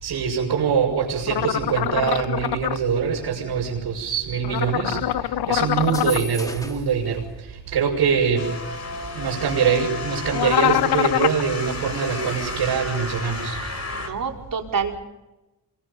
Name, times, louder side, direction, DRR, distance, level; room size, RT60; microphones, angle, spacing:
voice 1, 0.0-5.0 5.5-7.2 7.7-8.5 9.1-13.6, right 6 dB, 80° right, -5 dB, 6.1 m, -23 dB
sound 1, 1.3-2.8 4.4-6.2 10.3-11.4, left 13 dB, 65° left, 0.7 m, -24 dB
voice 2, 3.8-4.9 13.9-15.0, right 6 dB, 55° right, 1 dB, 4.8 m, -30 dB
sound 2, 5.8-7.0, left 1 dB, 10° left, 2.6 m, -37 dB
sound 3, 8.4-14.1, left 3 dB, 40° left, 4.6 m, -32 dB
27.0 x 24.0 x 5.4 m, 1.0 s
cardioid pair, 85°, 40 cm